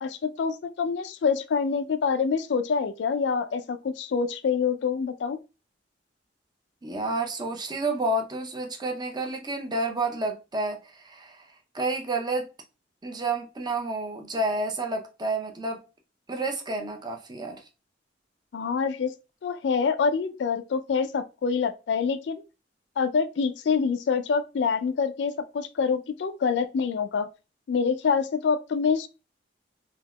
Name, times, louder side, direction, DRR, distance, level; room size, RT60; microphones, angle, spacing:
voice 1, 0.0-5.4 18.5-19.1 19.4-22.4 23.0-27.3 27.7-29.1, left 5 dB, 75° left, 0.3 m, -26 dB
voice 2, 6.8-11.5 11.7-12.5 13.0-15.8 16.3-17.6, right 2 dB, 25° right, 0.5 m, -30 dB
3.4 x 2.8 x 2.2 m
head